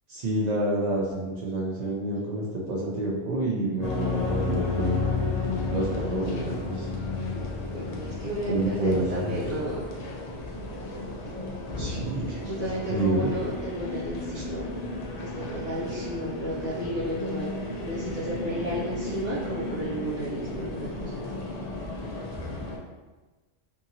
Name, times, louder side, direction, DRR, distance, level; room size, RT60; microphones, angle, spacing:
voice 1, 0.1-5.0 5.7-6.9 8.5-9.3 11.8-12.4 12.9-13.3 14.3-14.4, right 2 dB, 55° right, -4 dB, 0.4 m, -28 dB
sound 1, 3.8-22.8, left 2 dB, 60° left, 0.4 m, -33 dB
voice 2, 7.7-9.9 12.4-14.7 15.2-17.5 17.8-21.4, equal, 85° right, -10 dB, 1.1 m, -33 dB
2.7 x 2.6 x 2.7 m, 1.2 s
omnidirectional pair, 1.2 m